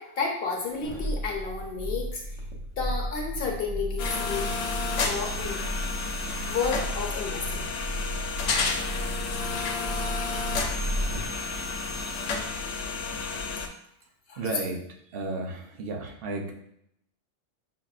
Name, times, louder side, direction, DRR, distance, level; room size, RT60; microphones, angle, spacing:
voice 1, 0.0-2.4 2.8-4.5 5.0-5.6 6.5-7.7 14.3-14.4, left 4 dB, 60° left, 0 dB, 0.9 m, -31 dB
sound 1, 0.7-11.4 11.8-11.9, equal, 80° right, 1.1 m, -34 dB
sound 2, 4.0-13.7, left 4 dB, 85° left, 0.9 m, -31 dB
voice 2, 14.4-14.8 15.1-16.5, right 3 dB, 60° right, 1 dB, 0.8 m, -33 dB
5.8 x 2.0 x 2.4 m, 0.74 s
omnidirectional pair, 1.2 m